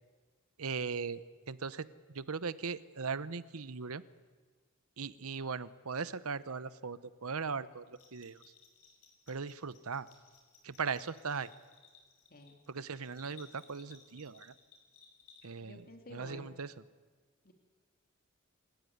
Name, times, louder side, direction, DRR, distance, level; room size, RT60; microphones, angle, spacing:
voice 1, 0.6-1.9 2.1-4.0 5.0-8.4 9.3-10.1 10.6-11.5 12.7-14.5 15.4-16.7, right 5 dB, 80° right, 15 dB, 0.9 m, -39 dB
Bell, 7.9-15.8, left 6 dB, 75° left, 5.9 m, -61 dB
voice 2, 12.3-12.6 15.6-16.6 17.4-17.5, left 2 dB, 45° left, 4 dB, 2.5 m, -51 dB
27.5 x 15.5 x 9.4 m, 1.5 s
head